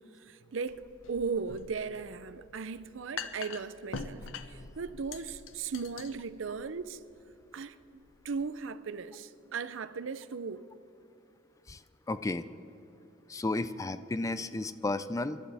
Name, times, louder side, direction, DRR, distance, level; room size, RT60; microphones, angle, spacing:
voice 1, 0.2-0.8 1.1-7.0 7.5-10.6, right 5 dB, 80° right, 0.6 m, -37 dB
sound 1, 0.7-8.4, left 5 dB, 90° left, 0.8 m, -45 dB
voice 2, 12.1-12.4 13.3-15.4, left 2 dB, 15° left, 0.4 m, -33 dB
26.5 x 12.0 x 3.5 m
head